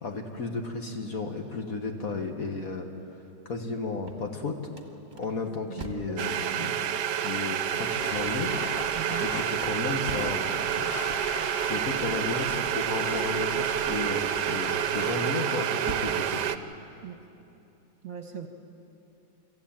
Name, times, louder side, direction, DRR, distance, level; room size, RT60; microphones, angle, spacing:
voice 1, 0.0-2.8 3.4-4.6 5.2-8.6 9.1-10.9 11.7-16.4, left 3 dB, 45° left, 4 dB, 1.7 m, -33 dB
sound 1, 3.9-6.2 9.2-10.5 14.4-14.9 15.4-16.2, right 3 dB, 25° right, 1.5 m, -42 dB
voice 2, 5.7-6.2 6.5-6.8 8.9-9.3 17.0-17.2 18.0-18.5, right 9 dB, 50° right, 5 dB, 1.4 m, -40 dB
sound 2, 6.2-16.6, right 10 dB, 65° right, 1.2 m, -29 dB
sound 3, 7.6-15.1, left 5 dB, 70° left, 0.5 m, -41 dB
25.5 x 14.5 x 8.8 m, 2.8 s
omnidirectional pair, 2.2 m